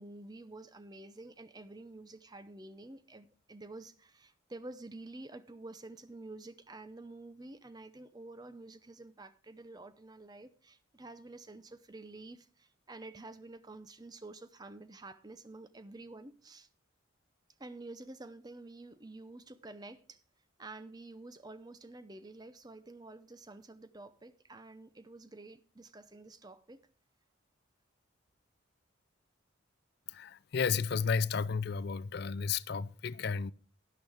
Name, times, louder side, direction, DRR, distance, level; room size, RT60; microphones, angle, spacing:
voice 1, 0.0-16.7 17.6-20.2 20.6-26.8, right 2 dB, 20° right, 0.6 m, -49 dB
voice 2, 30.1-33.5, left 5 dB, 50° left, 0.4 m, -32 dB
11.5 x 10.5 x 3.5 m
head